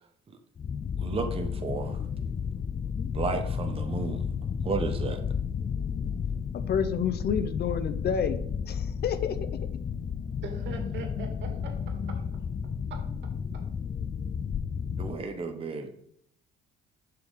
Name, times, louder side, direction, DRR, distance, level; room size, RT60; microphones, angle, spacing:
rumble space low pass people talking, 0.6-15.2, left 7 dB, 25° left, 0.4 m, -32 dB
voice 1, 1.0-2.0 3.1-4.2 4.6-5.2 15.0-15.9, right 4 dB, 30° right, 5 dB, 0.9 m, -32 dB
voice 2, 6.7-8.4 8.6-9.4, left 7 dB, 50° left, 11 dB, 0.8 m, -29 dB
voice 3, 10.4-12.2 12.9-13.0 13.5-13.6, right 4 dB, 65° right, 3 dB, 2.1 m, -41 dB
7.0 x 5.8 x 3.9 m, 0.68 s
cardioid pair, 90°, 21 cm